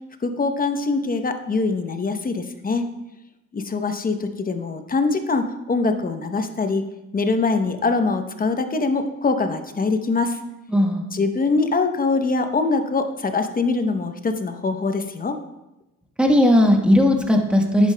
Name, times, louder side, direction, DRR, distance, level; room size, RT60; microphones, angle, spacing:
voice 1, 0.2-2.9 3.5-6.8 7.1-10.4 11.1-15.4, left 3 dB, 30° left, 7 dB, 0.8 m, -23 dB
voice 2, 10.7-11.0 16.2-17.9, left 1 dB, 5° right, 2 dB, 1.3 m, -17 dB
10.0 x 8.3 x 2.2 m, 0.96 s
cardioid pair, 90°, 30 cm